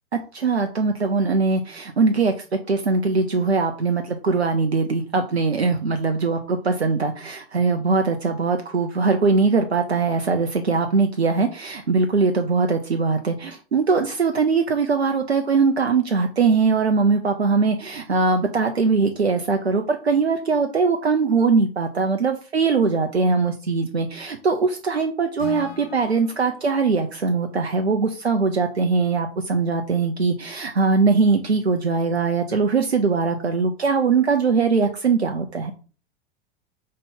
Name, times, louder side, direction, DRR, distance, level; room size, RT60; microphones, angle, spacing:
voice 1, 0.3-2.3 2.7-35.7, right 4 dB, 90° right, 5 dB, 0.7 m, -21 dB
Acoustic guitar / Strum, 25.4-28.6, left 7 dB, 70° left, 1.3 m, -42 dB
5.2 x 3.3 x 5.6 m, 0.37 s
figure-of-eight pair, 90°, 31 cm